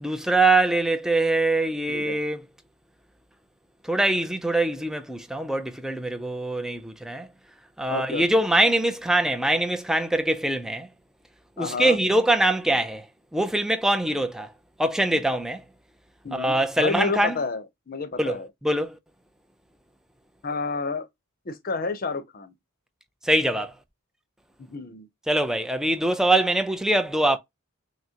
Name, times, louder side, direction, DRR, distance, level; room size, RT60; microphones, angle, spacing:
voice 1, 0.0-2.4 3.8-7.3 7.8-10.9 11.6-13.1 13.3-14.5 14.8-15.6 16.3-17.4 18.2-19.0 23.2-23.7 25.3-27.4, right 1 dB, ahead, 0.4 m, -23 dB
voice 2, 1.9-2.2 7.9-8.2 11.6-12.0 16.2-18.5 20.4-21.1 21.5-22.5 24.6-25.1, left 3 dB, 40° left, 0.7 m, -30 dB
6.1 x 2.1 x 2.8 m
head